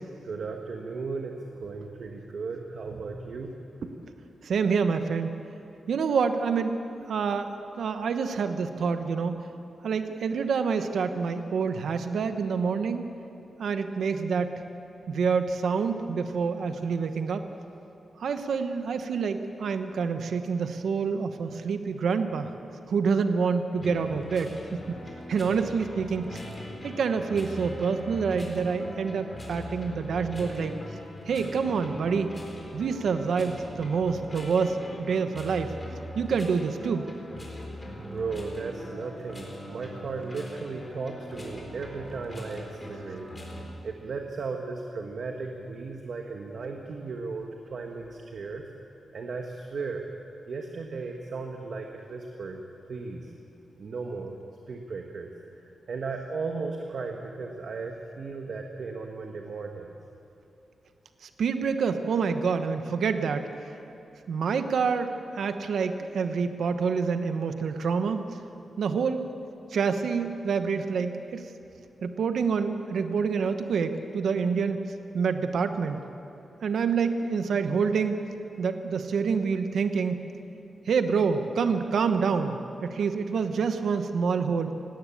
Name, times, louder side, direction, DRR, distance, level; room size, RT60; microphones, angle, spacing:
voice 1, 0.2-3.5 3.8-3.9 38.0-43.3 43.8-48.6 49.1-50.0 50.5-52.6 52.9-53.3 53.8-54.4 54.7-59.9, right 4 dB, 55° right, 3 dB, 1.4 m, -36 dB
voice 2, 4.4-5.3 5.9-6.7 7.1-9.5 9.8-13.0 13.6-14.6 15.1-17.4 18.2-22.5 22.9-25.0 25.3-26.4 26.8-30.8 31.3-32.3 32.7-35.7 36.1-37.1 61.4-63.5 64.3-68.2 68.8-69.3 69.7-71.5 72.0-74.8 75.1-76.0 76.6-78.2 78.6-80.3 80.9-84.7, right 5 dB, 80° right, 8 dB, 1.0 m, -27 dB
sound 1, 23.8-43.6, equal, 20° left, 3.8 m, -41 dB
18.5 x 17.0 x 8.5 m, 2.8 s
wide cardioid pair, 160°, 0 cm